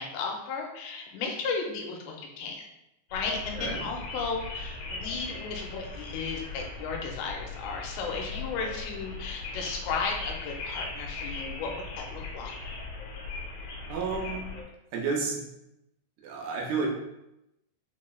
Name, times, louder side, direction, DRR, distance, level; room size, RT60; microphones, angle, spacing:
voice 1, 0.0-2.7 3.1-12.6, left 4 dB, 85° left, 1 dB, 2.8 m, -34 dB
sound 1, 3.1-14.6, left 3 dB, 65° left, 2.7 m, -39 dB
voice 2, 3.6-3.9 13.9-14.4 14.9-15.4 16.2-16.9, right 4 dB, 85° right, 0 dB, 2.5 m, -31 dB
6.1 x 3.1 x 2.2 m, 0.86 s
omnidirectional pair, 4.9 m